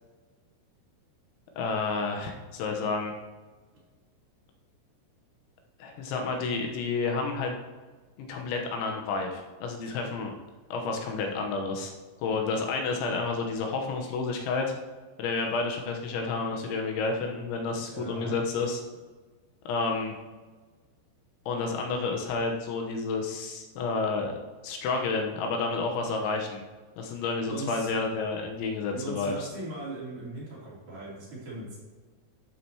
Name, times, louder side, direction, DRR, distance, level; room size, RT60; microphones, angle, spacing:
voice 1, 1.6-3.1 5.8-7.5 8.2-10.4 10.7-11.9 12.2-14.7 15.2-18.8 19.7-20.1 21.5-24.4 24.6-26.6 27.0-29.5, left 4 dB, 85° left, 2 dB, 3.4 m, -30 dB
voice 2, 17.8-18.4 27.5-27.9 28.9-31.8, right 2 dB, 50° right, -8 dB, 4.4 m, -38 dB
12.0 x 7.9 x 3.0 m, 1.3 s
omnidirectional pair, 5.3 m